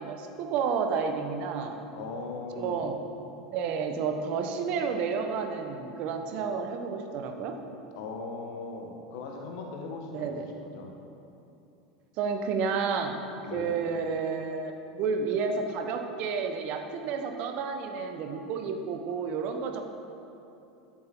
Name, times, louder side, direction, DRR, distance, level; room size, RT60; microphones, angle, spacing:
voice 1, 0.0-1.7 2.6-3.0 3.5-7.6 10.1-10.5 12.2-13.2 13.5-19.8, right 5 dB, 50° right, 5 dB, 1.2 m, -31 dB
voice 2, 1.9-2.9 8.0-11.0 13.4-13.8, left 3 dB, 55° left, 1 dB, 1.9 m, -39 dB
13.0 x 11.0 x 3.9 m, 2.9 s
figure-of-eight pair, 80°, 3 cm